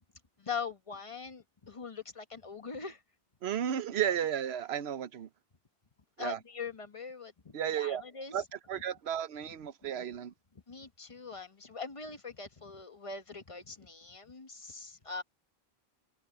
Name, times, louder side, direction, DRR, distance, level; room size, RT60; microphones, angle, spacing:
voice 1, 0.4-3.0 6.2-8.4 10.7-15.2, left 5 dB, 35° left, 1.1 m, -42 dB
voice 2, 3.4-5.3 6.2-6.4 7.5-8.0 8.3-10.3, right 9 dB, 85° right, 1.0 m, -33 dB
omnidirectional pair, 1.0 m